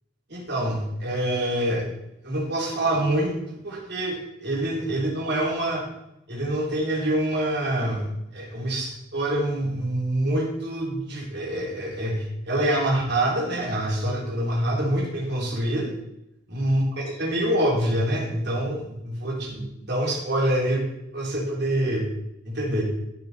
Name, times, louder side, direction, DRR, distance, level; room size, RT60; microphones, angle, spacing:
voice 1, 0.3-1.9 2.2-3.3 3.6-5.8 6.3-15.9 16.5-20.8 21.1-22.1 22.5-22.8, right 1 dB, 55° right, -4 dB, 3.7 m, -26 dB
13.5 x 6.9 x 4.4 m, 0.84 s
head